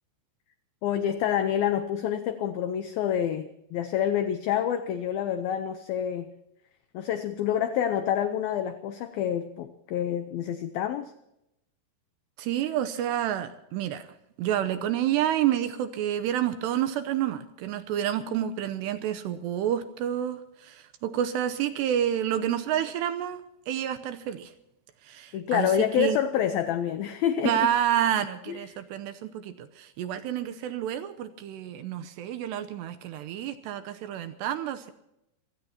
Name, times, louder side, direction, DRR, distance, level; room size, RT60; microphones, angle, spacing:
voice 1, 0.8-6.3 6.9-11.1 25.3-27.5 28.5-28.6, left 9 dB, 85° left, 10 dB, 2.1 m, -27 dB
voice 2, 12.4-14.1 14.4-24.5 25.0-26.2 27.4-34.9, right 11 dB, 75° right, 9 dB, 2.7 m, -29 dB
27.0 x 17.5 x 2.9 m, 0.84 s
omnidirectional pair, 5.4 m